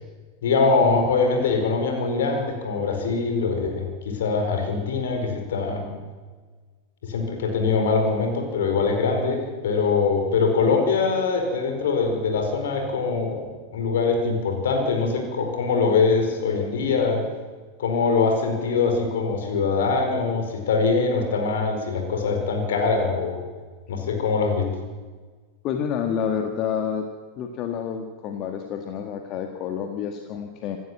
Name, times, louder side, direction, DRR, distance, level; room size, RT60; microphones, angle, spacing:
voice 1, 0.4-5.9 7.0-17.3 17.8-23.4 23.9-24.7, left 4 dB, 60° left, 4 dB, 4.7 m, -23 dB
voice 2, 25.6-27.1 27.4-30.8, left 8 dB, 35° left, 5 dB, 1.7 m, -29 dB
26.5 x 13.0 x 7.7 m, 1.4 s
figure-of-eight pair, 90°, 0 cm